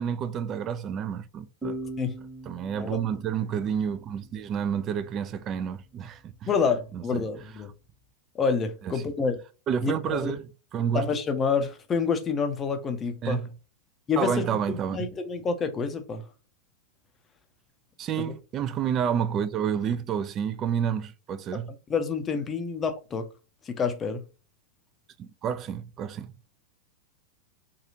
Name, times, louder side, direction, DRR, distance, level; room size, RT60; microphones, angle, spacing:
voice 1, 0.0-1.8 2.5-6.5 6.9-7.3 8.8-9.0 9.7-11.1 13.2-13.5 14.2-15.1 18.0-21.7 25.2-26.4, right 8 dB, 30° right, 0.3 m, -29 dB
sound 1, 1.6-5.0, right 1 dB, 5° right, 1.2 m, -40 dB
voice 2, 6.5-7.7 8.4-9.4 9.8-10.3 10.9-13.4 14.1-16.2 18.2-18.3 21.9-23.3 23.7-24.2, left 5 dB, 20° left, 0.5 m, -28 dB
2.7 x 2.4 x 2.7 m
figure-of-eight pair, 90°, 0 cm